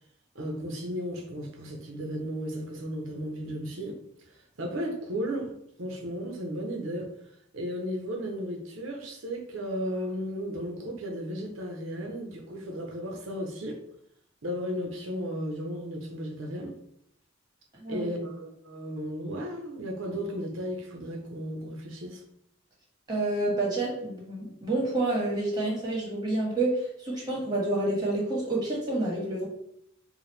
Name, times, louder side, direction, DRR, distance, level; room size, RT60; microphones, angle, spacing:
voice 1, 0.3-4.0 4.3-5.5 5.8-7.1 7.5-13.8 14.4-16.8 17.9-22.2, equal, 85° right, 1 dB, 0.9 m, -34 dB
voice 2, 17.8-18.1 23.1-29.5, right 2 dB, 20° right, -4 dB, 1.6 m, -28 dB
4.9 x 2.5 x 3.2 m, 0.72 s
head